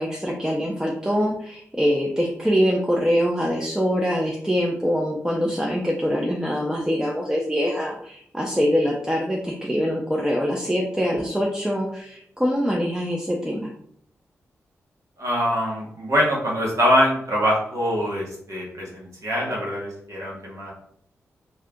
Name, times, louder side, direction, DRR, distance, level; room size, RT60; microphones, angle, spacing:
voice 1, 0.0-13.7, equal, 10° right, -2 dB, 0.6 m, -24 dB
voice 2, 15.2-20.7, equal, 65° right, -3 dB, 1.2 m, -23 dB
2.7 x 2.3 x 3.5 m, 0.68 s
supercardioid pair, 40°, 6 cm